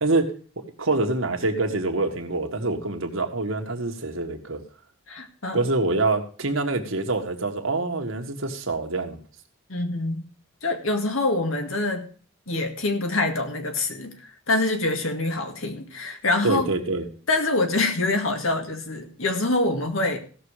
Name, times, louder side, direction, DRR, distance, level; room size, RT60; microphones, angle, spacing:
voice 1, 0.0-4.6 5.5-9.2 16.4-17.1, right 2 dB, 70° right, 4 dB, 1.7 m, -26 dB
voice 2, 5.1-5.6 9.7-10.3 10.6-12.1 12.5-16.7 17.3-20.2, left 2 dB, 75° left, 5 dB, 2.0 m, -25 dB
16.0 x 6.8 x 4.9 m, 0.41 s
head